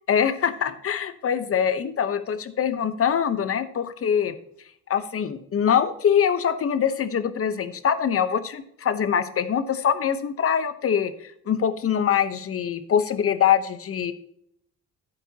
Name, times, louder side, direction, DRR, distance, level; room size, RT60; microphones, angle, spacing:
voice 1, 0.1-4.3 4.9-14.1, left 8 dB, 50° left, 12 dB, 0.9 m, -23 dB
11.0 x 9.0 x 2.8 m, 0.71 s
cardioid pair, 90°, 30 cm